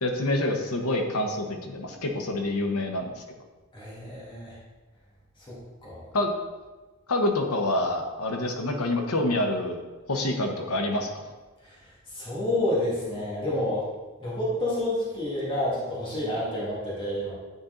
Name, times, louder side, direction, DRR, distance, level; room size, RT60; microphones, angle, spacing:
voice 1, 0.0-3.2 6.1-6.3 7.1-9.8 10.1-11.2, left 1 dB, 80° left, 3 dB, 1.0 m, -27 dB
voice 2, 3.7-4.6 5.4-6.0 11.6-13.9 14.2-17.3, left 1 dB, 25° left, -8 dB, 1.8 m, -29 dB
9.3 x 4.4 x 3.9 m, 1.2 s
head